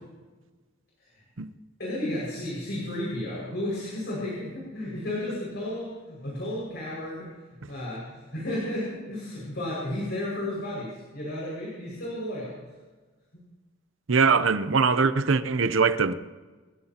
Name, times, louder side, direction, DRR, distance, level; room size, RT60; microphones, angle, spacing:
voice 1, 1.8-7.3 7.7-12.6 13.3-13.4, left 1 dB, 60° left, 6.0 m, -33 dB
voice 2, 14.1-16.1, right 4 dB, 70° right, 0.7 m, -22 dB
27.5 x 15.5 x 3.0 m
head